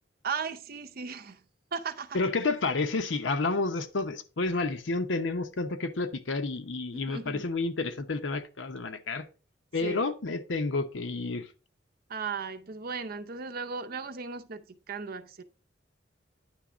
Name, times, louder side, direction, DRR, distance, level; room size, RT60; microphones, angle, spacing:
voice 1, 0.2-1.4 1.7-2.2 7.1-7.5 9.8-10.0 12.1-15.4, right 5 dB, 55° right, 0.6 m, -36 dB
voice 2, 2.1-9.3 9.7-11.5, left 3 dB, 80° left, 0.8 m, -30 dB
9.9 x 3.4 x 5.0 m
head